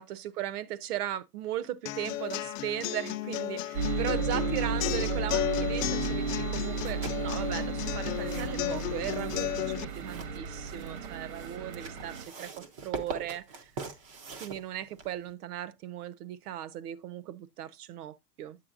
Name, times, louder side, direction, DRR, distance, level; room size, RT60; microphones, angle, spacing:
voice 1, 0.0-6.3 6.5-13.7 14.4-18.6, right 12 dB, 65° right, 0.9 m, -37 dB
sound 1, 1.9-9.8, left 14 dB, 55° left, 0.6 m, -34 dB
sound 2, 3.7-12.2, right 5 dB, 85° right, 1.7 m, -34 dB
sound 3, 6.7-15.3, right 4 dB, 20° right, 0.4 m, -44 dB
8.7 x 7.9 x 2.4 m
supercardioid pair, 160°, 48 cm